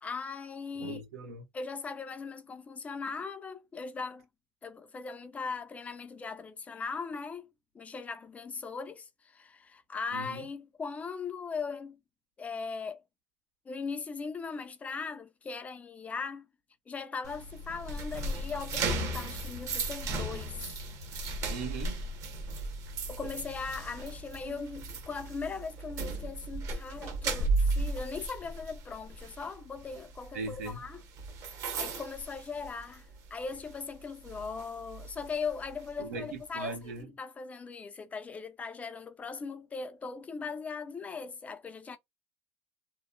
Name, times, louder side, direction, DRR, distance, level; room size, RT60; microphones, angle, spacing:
voice 1, 0.0-1.0 1.5-4.3 4.6-7.5 7.7-12.0 12.4-13.0 13.7-16.5 16.9-20.7 23.1-31.0 31.7-42.0, left 5 dB, 20° left, 0.4 m, -39 dB
voice 2, 0.8-1.4 10.1-10.5 21.5-22.0 30.3-30.8 36.0-37.1, right 3 dB, 90° right, 1.1 m, -39 dB
sound 1, 17.2-33.2 33.5-33.8 34.3-35.9, right 2 dB, 40° right, 0.9 m, -35 dB
2.9 x 2.0 x 2.4 m
supercardioid pair, 135°, 8 cm